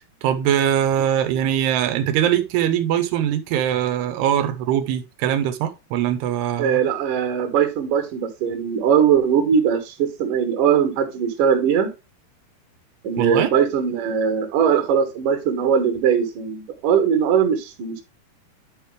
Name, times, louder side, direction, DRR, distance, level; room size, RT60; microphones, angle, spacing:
voice 1, 0.2-6.8 13.2-13.5, right 10 dB, 90° right, 2.8 m, -22 dB
voice 2, 6.6-11.9 13.0-18.0, right 7 dB, 60° right, 2.7 m, -20 dB
11.0 x 4.8 x 3.2 m
omnidirectional pair, 4.6 m